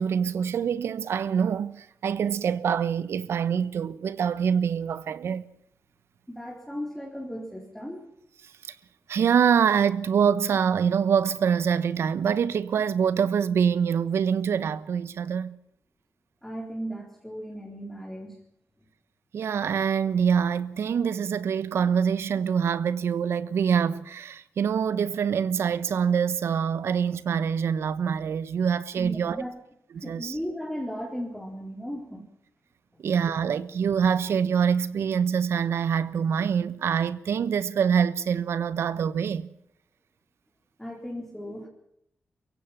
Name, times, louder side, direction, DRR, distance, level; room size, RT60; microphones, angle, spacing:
voice 1, 0.0-5.4 9.1-15.6 19.3-29.4 29.9-30.4 33.0-39.5, right 7 dB, 85° right, 1.1 m, -25 dB
voice 2, 6.3-8.1 16.4-18.4 18.8-18.9 28.9-29.5 30.0-32.2 40.8-41.7, equal, 5° left, 4.1 m, -36 dB
23.5 x 16.0 x 7.4 m
wide cardioid pair, 120°, 4 cm